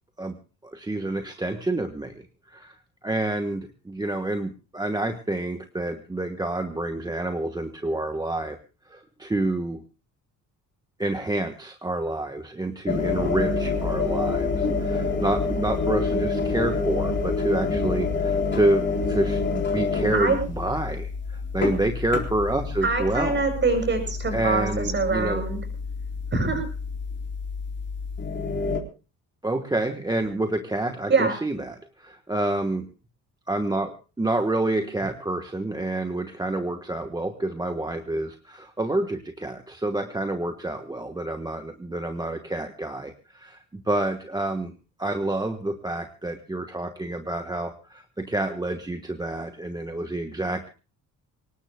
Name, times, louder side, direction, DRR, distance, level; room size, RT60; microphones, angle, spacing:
voice 1, 0.6-2.8 3.0-8.6 8.8-9.8 11.0-23.4 24.3-25.4 29.4-32.9 33.5-44.7 45.0-50.7, right 2 dB, 10° right, 6 dB, 1.2 m, -28 dB
sound 1, 12.9-28.8, left 4 dB, 35° left, 3.8 m, -27 dB
voice 2, 22.8-25.6 26.3-26.6 31.1-31.4, right 4 dB, 35° right, 7 dB, 7.1 m, -24 dB
25.0 x 19.0 x 2.2 m, 0.33 s
cardioid pair, 125°, 33 cm